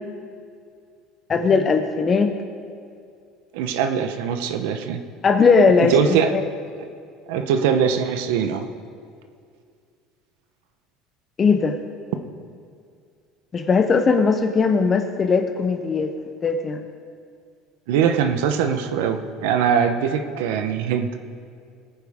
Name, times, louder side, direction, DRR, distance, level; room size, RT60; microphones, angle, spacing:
voice 1, 1.3-2.3 5.2-5.9 6.3-6.4 11.4-11.8 13.5-16.1 16.4-16.8, left 5 dB, 25° left, 7 dB, 0.7 m, -18 dB
voice 2, 3.5-5.0 5.8-6.3 7.3-8.6 17.9-21.2, right 7 dB, 90° right, 8 dB, 0.9 m, -22 dB
20.5 x 9.7 x 3.6 m, 2.3 s
cardioid pair, 155°, 0 cm